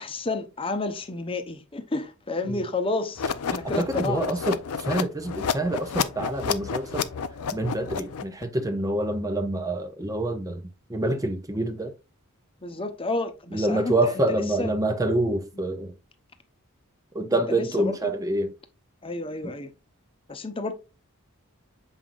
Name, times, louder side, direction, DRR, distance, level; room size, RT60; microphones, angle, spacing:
voice 1, 0.0-4.2 12.6-14.7 17.5-18.0 19.0-19.7 20.3-20.7, left 2 dB, 25° left, 0.8 m, -31 dB
sound 1, 3.2-8.4, left 6 dB, 85° left, 0.6 m, -30 dB
voice 2, 3.5-7.1 7.5-10.6 10.9-11.9 13.5-15.9 17.1-18.5 19.4-19.5, right 1 dB, 15° right, 0.5 m, -27 dB
7.4 x 5.3 x 2.4 m
head